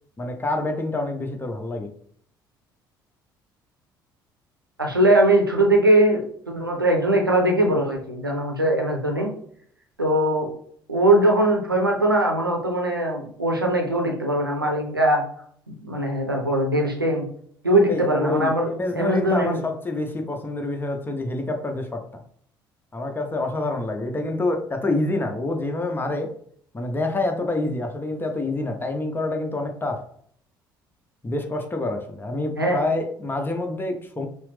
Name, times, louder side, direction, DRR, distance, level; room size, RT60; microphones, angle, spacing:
voice 1, 0.2-1.9 17.9-22.1 22.9-26.3 26.7-30.1 31.2-34.3, left 2 dB, 20° left, 0.8 m, -27 dB
voice 2, 4.8-9.3 10.0-10.5 10.9-15.2 15.7-17.3 17.6-19.6 32.6-32.8, right 1 dB, 90° right, 0.6 m, -21 dB
5.8 x 2.0 x 3.3 m
figure-of-eight pair, 50°, 11 cm